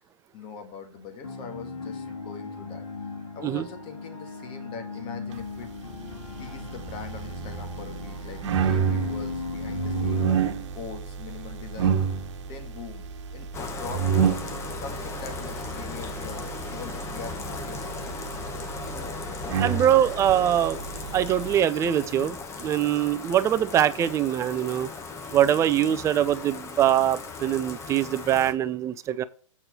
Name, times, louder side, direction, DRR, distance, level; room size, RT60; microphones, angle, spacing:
voice 1, 0.3-2.8 3.3-5.7 6.4-12.0 12.4-14.3 14.7-18.2, left 6 dB, 30° left, 7 dB, 1.9 m, -42 dB
sound 1, 1.2-10.4, left 4 dB, 75° left, 3.0 m, -37 dB
sound 2, 6.1-21.5, right 7 dB, 60° right, 1.3 m, -30 dB
Bathtub (filling or washing), 13.5-28.5, left 4 dB, 15° left, 1.0 m, -38 dB
voice 2, 19.6-20.8 21.1-24.9 25.3-29.2, right 11 dB, 15° right, 14 dB, 0.5 m, -23 dB
8.3 x 4.4 x 6.4 m, 0.42 s
hypercardioid pair, 130°, 17 cm